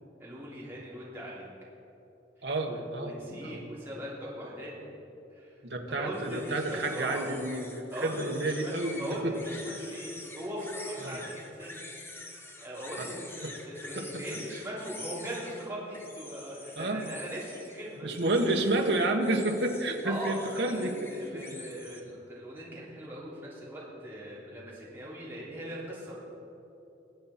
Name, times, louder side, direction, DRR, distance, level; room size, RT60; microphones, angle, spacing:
voice 1, 0.2-1.5 2.4-4.9 5.3-5.5 5.9-7.2 7.9-8.1 8.4-10.1 10.3-11.8 12.1-18.1 20.0-26.1, equal, 15° right, -8 dB, 3.1 m, -40 dB
voice 2, 2.4-3.1 3.5-3.6 5.6-9.4 11.0-11.2 13.0-13.1 13.4-13.5 13.9-14.2 16.8-17.1 18.0-21.4, right 2 dB, 65° right, 3 dB, 1.3 m, -30 dB
sound 1, 6.1-22.0, left 2 dB, 15° left, 1.0 m, -46 dB
22.0 x 8.4 x 4.3 m, 2.9 s
head